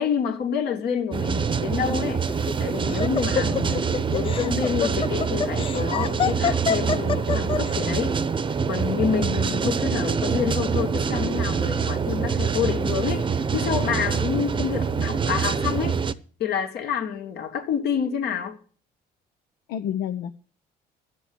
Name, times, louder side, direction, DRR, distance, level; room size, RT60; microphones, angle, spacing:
voice 1, 0.0-2.3 2.6-8.2 8.7-16.0 16.4-18.6, left 7 dB, 70° left, 2.7 m, -28 dB
sound 1, 1.1-16.1, right 6 dB, 30° right, 0.8 m, -25 dB
Laughter, 2.3-7.7, left 7 dB, 30° left, 0.5 m, -26 dB
voice 2, 3.4-4.1 9.1-9.7 14.0-14.5 19.7-20.3, left 9 dB, 85° left, 0.9 m, -33 dB
12.5 x 7.9 x 8.1 m
cardioid pair, 110°, 17 cm